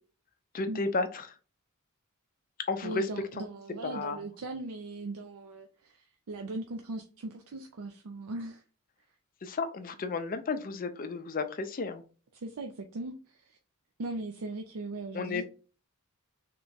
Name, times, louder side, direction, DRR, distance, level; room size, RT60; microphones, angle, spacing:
voice 1, 0.5-1.3 2.7-3.1 3.8-4.2 9.4-12.0 15.1-15.4, left 3 dB, 40° left, 8 dB, 0.5 m, -32 dB
voice 2, 2.8-8.6 12.3-13.6 14.0-15.4, right 2 dB, 75° right, 4 dB, 0.5 m, -39 dB
3.7 x 2.3 x 3.9 m, 0.35 s
head